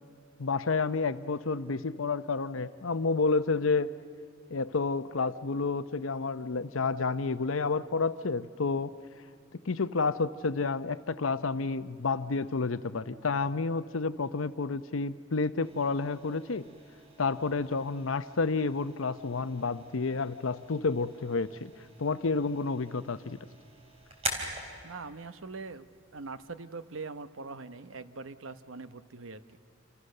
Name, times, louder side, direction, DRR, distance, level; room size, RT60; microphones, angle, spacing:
voice 1, 0.4-3.9 4.5-8.9 9.7-16.6 17.2-21.7 22.0-23.4, left 4 dB, 85° left, 13 dB, 0.7 m, -30 dB
sound 1, 15.6-27.2, right 2 dB, 30° right, 3.7 m, -45 dB
voice 2, 24.8-25.9 26.1-29.4, right 4 dB, 80° right, 12 dB, 0.9 m, -42 dB
28.0 x 28.0 x 6.7 m, 2.2 s
head